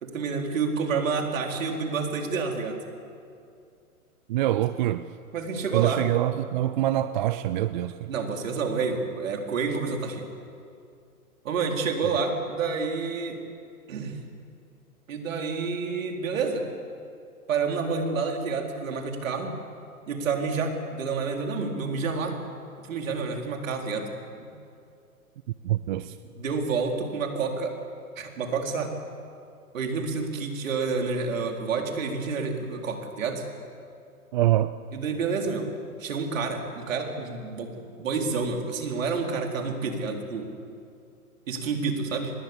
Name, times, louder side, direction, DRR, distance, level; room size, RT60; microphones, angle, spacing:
voice 1, 0.0-2.8 5.3-6.0 8.1-10.3 11.4-13.4 13.9-14.2 15.1-16.7 17.5-19.6 20.1-22.4 22.8-24.1 24.4-24.5 26.3-27.7 28.2-28.9 29.7-33.4 34.9-35.6 36.0-40.5 41.5-42.3, right 4 dB, 65° right, 3 dB, 4.1 m, -29 dB
voice 2, 4.3-5.1 5.7-8.1 25.6-26.2 34.3-34.7, right 14 dB, 35° right, 13 dB, 0.5 m, -25 dB
25.5 x 20.5 x 7.3 m, 2.4 s
hypercardioid pair, 125°, 43 cm